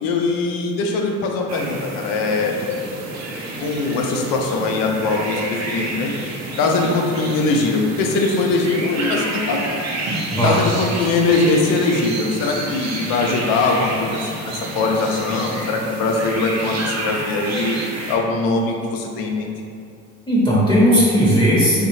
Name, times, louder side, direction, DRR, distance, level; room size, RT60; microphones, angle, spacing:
voice 1, 0.0-2.6 3.6-6.1 6.6-9.8 10.4-17.8 18.1-19.5, left 3 dB, 60° left, 1 dB, 0.5 m, -21 dB
sound 1, 1.5-18.2, right 2 dB, 45° right, 0.6 m, -29 dB
voice 2, 10.3-10.6 20.3-21.9, equal, 10° left, -8 dB, 0.7 m, -16 dB
2.6 x 2.1 x 3.0 m, 2.4 s
hypercardioid pair, 70°, 38 cm